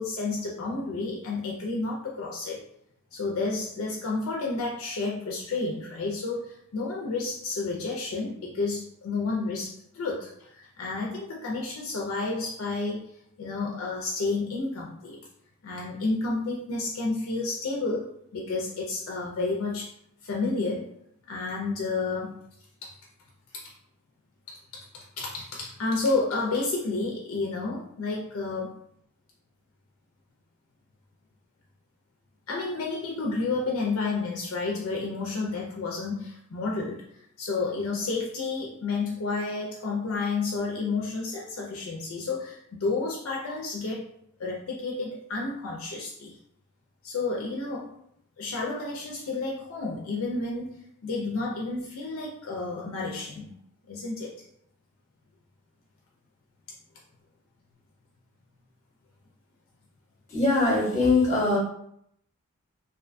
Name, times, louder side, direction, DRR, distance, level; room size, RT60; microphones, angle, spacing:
voice 1, 0.0-2.6 3.1-13.0 13.4-15.2 15.6-18.0 18.3-19.9 20.2-20.9 21.3-22.4 22.8-22.9 24.5-28.8 32.5-37.0 37.4-44.1 44.4-46.4 47.0-47.9 48.4-50.7 51.0-53.5 53.9-54.3, left 3 dB, 65° left, -2 dB, 0.4 m, -31 dB
voice 2, 60.3-61.6, left 3 dB, 30° left, -5 dB, 0.9 m, -22 dB
2.6 x 2.1 x 2.5 m, 0.73 s
head